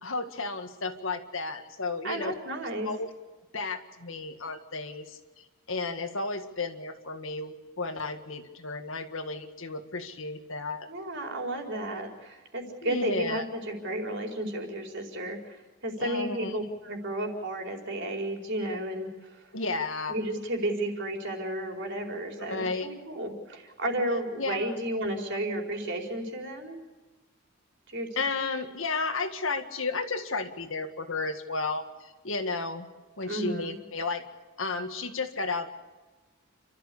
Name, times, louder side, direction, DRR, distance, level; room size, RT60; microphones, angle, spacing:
voice 1, 0.0-2.3 2.8-3.1 3.5-10.9 12.8-13.4 16.0-16.7 19.5-20.1 22.4-22.9 24.4-24.7 28.2-32.9 33.2-34.2 34.6-35.7, left 3 dB, 65° left, 7 dB, 1.9 m, -33 dB
voice 2, 2.0-2.9 10.9-15.5 15.8-19.4 20.1-26.8 27.9-28.1 33.3-33.7, right 1 dB, 55° right, 2 dB, 4.6 m, -32 dB
30.0 x 13.5 x 8.5 m, 1.2 s
head